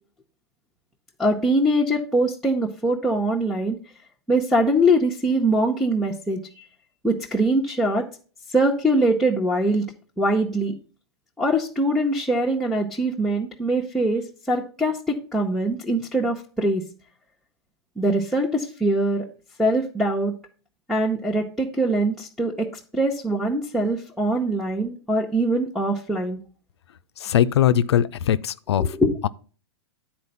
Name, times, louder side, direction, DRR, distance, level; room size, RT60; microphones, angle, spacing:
voice 1, 1.2-3.8 4.3-6.6 7.0-8.0 8.5-9.9 10.2-10.7 11.4-16.8 18.0-19.3 19.6-20.3 20.9-26.4 28.8-29.1, right 1 dB, ahead, 0.9 m, -23 dB
voice 2, 27.2-29.0 29.2-29.3, left 10 dB, 75° left, 0.4 m, -20 dB
9.4 x 4.4 x 5.4 m
hypercardioid pair, 115°, 14 cm